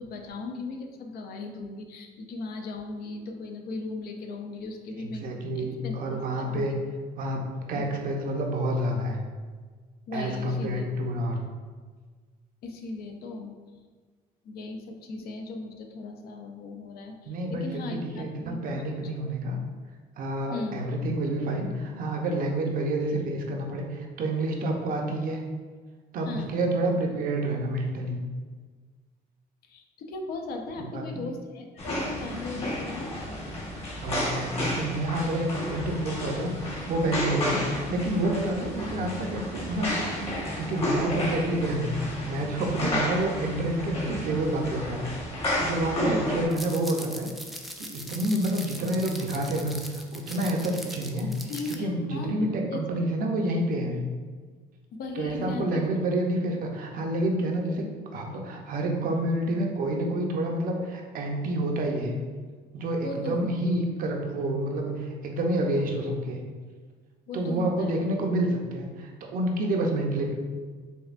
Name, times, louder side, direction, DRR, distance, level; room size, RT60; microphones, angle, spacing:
voice 1, 0.0-5.3 5.5-6.7 7.7-7.9 10.1-10.9 12.6-13.5 14.4-19.1 20.5-20.9 26.3-26.5 29.7-33.1 42.8-43.0 46.0-46.3 51.5-53.1 54.9-55.8 63.0-63.5 67.3-68.1, left 3 dB, 65° left, 3 dB, 0.5 m, -37 dB
voice 2, 5.0-6.8 7.2-9.2 10.1-11.4 17.3-19.6 20.2-25.4 26.1-28.2 30.8-31.3 34.0-41.9 42.2-47.3 47.8-49.8 50.1-51.4 51.7-54.0 55.2-57.9 58.1-62.1 62.7-66.4 67.3-70.3, right 1 dB, 55° right, 1 dB, 0.6 m, -29 dB
sound 1, 31.8-46.5, left 1 dB, 35° left, 1.1 m, -31 dB
sound 2, 46.5-51.8, equal, ahead, 0.3 m, -40 dB
5.3 x 2.2 x 2.5 m, 1.5 s
cardioid pair, 110°, 17 cm